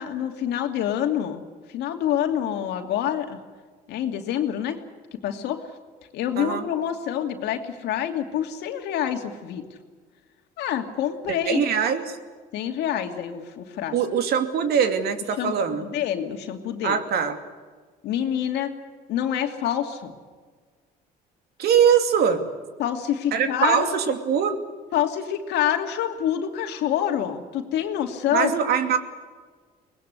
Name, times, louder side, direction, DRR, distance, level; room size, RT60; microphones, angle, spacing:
voice 1, 0.0-1.4 1.7-3.4 3.9-4.8 5.2-5.6 6.1-9.6 10.6-11.6 12.5-14.0 15.4-17.0 18.0-18.7 19.1-20.1 22.8-23.9 24.9-28.5, left 10 dB, 80° left, 5 dB, 2.6 m, -27 dB
voice 2, 6.4-6.7 11.3-12.2 13.9-15.9 16.8-17.4 21.6-22.4 23.3-24.6 28.3-29.0, right 7 dB, 70° right, 7 dB, 2.6 m, -22 dB
24.0 x 19.5 x 8.3 m, 1.5 s
cardioid pair, 110°, 17 cm